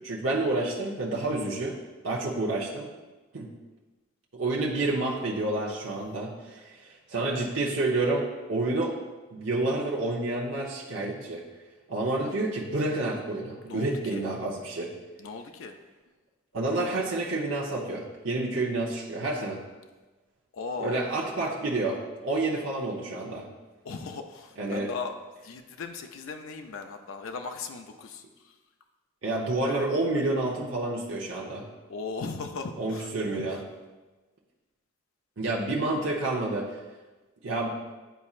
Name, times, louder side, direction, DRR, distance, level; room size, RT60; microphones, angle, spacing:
voice 1, 0.0-1.8 2.0-2.9 3.3-3.5 4.3-8.9 9.3-11.4 11.9-14.9 16.5-19.6 20.8-23.5 24.6-24.9 29.2-31.7 32.8-33.6 35.4-36.7 37.4-37.8, right 2 dB, 60° right, -3 dB, 0.8 m, -29 dB
voice 2, 13.7-14.3 15.2-15.8 20.5-21.0 23.8-25.1 25.4-28.5 29.6-29.9 30.3-30.4 31.9-33.6, left 4 dB, 70° left, 6 dB, 0.5 m, -38 dB
10.0 x 4.2 x 2.4 m, 1.2 s
head